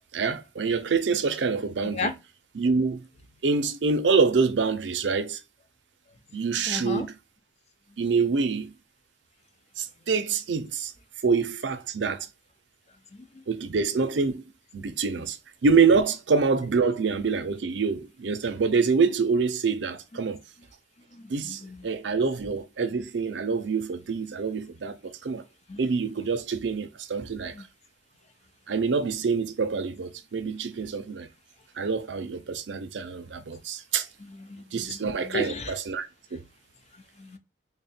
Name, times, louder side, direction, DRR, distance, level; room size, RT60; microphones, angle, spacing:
voice 1, 0.1-2.1 2.6-3.0 3.4-5.4 6.3-7.1 8.0-8.7 9.8-10.9 11.2-12.3 13.5-14.4 14.7-15.4 15.6-20.4 21.3-25.4 25.8-27.5 28.7-31.3 31.8-34.1 34.7-36.4, right 5 dB, 90° right, 0.5 m, -26 dB
voice 2, 6.7-7.1 13.1-13.4 15.2-15.3 21.1-21.9 25.7-25.8 27.5-27.6 34.2-35.7 37.2-37.4, left 3 dB, 40° left, 0.5 m, -35 dB
3.6 x 2.1 x 4.1 m
head